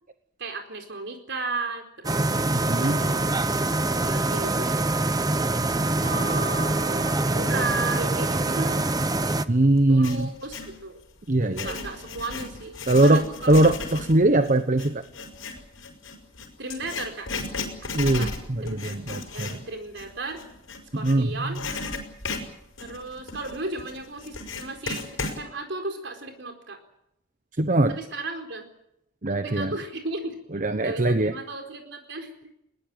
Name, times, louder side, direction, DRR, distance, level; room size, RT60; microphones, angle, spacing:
voice 1, 0.4-2.3 2.7-3.3 3.9-4.9 6.0-8.8 9.9-11.0 11.6-13.6 16.6-17.3 17.8-18.3 18.6-19.0 19.3-20.4 20.9-21.6 22.8-26.8 27.9-28.7 29.3-30.4 30.8-32.5, right 3 dB, 60° right, 5 dB, 4.4 m, -34 dB
sound 1, 2.0-9.4, right 2 dB, 20° right, 0.8 m, -24 dB
voice 2, 2.5-3.0 9.5-10.3 11.3-11.7 12.9-13.2 13.5-15.0 17.9-19.5 21.0-21.3 27.6-28.0 29.2-29.7 30.5-31.3, right 2 dB, 40° right, 9 dB, 1.0 m, -21 dB
Writing, 9.8-10.8 11.4-21.2 21.5-25.4, left 3 dB, 80° left, 5.9 m, -35 dB
21.5 x 20.0 x 9.1 m, 0.80 s
head